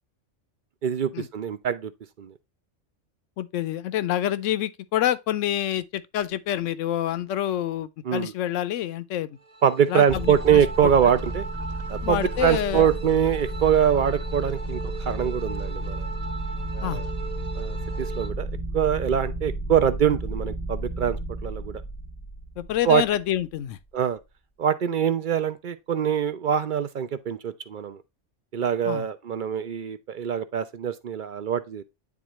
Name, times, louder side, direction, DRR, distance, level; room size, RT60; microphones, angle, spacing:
voice 1, 0.8-1.9 2.2-2.3 8.0-8.3 9.6-11.4 11.9-14.8 15.1-16.1 16.7-17.0 17.6-18.5 18.7-21.8 22.8-23.0 23.9-24.2 24.6-28.0 28.5-31.8, right 8 dB, 55° right, 0.6 m, -24 dB
voice 2, 3.4-9.4 9.9-10.9 12.0-12.9 16.8-17.0 22.6-23.8 28.8-29.0, left 12 dB, 80° left, 1.0 m, -27 dB
sound 1, 9.4-18.3, right 3 dB, 40° right, 1.0 m, -39 dB
sound 2, 10.1-23.4, right 2 dB, 5° right, 0.6 m, -32 dB
9.4 x 3.7 x 3.0 m
omnidirectional pair, 1.3 m